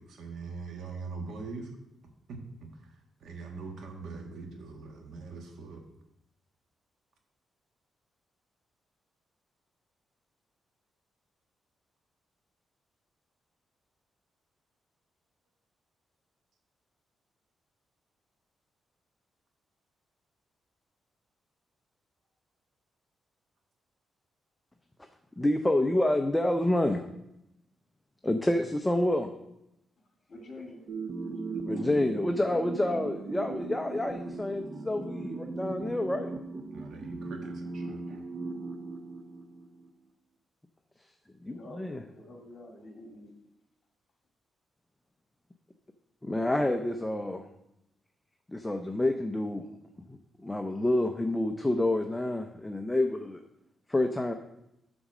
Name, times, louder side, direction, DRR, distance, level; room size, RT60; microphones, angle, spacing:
voice 1, 0.0-1.7 2.3-2.4 2.8-2.9 3.2-5.8 36.7-38.2, right 4 dB, 75° right, 3 dB, 1.4 m, -42 dB
voice 2, 25.4-27.0 28.2-29.3 31.7-36.3 41.4-42.0 46.2-47.5 48.5-49.7 50.1-53.4 53.9-54.3, left 1 dB, 10° left, 5 dB, 0.5 m, -28 dB
voice 3, 30.3-30.8 41.4-43.3, left 2 dB, 50° left, 1 dB, 2.1 m, -47 dB
sound 1, 30.9-39.9, right 3 dB, 50° right, 0.7 m, -38 dB
8.7 x 4.2 x 6.1 m, 0.84 s
cardioid pair, 110°, 0 cm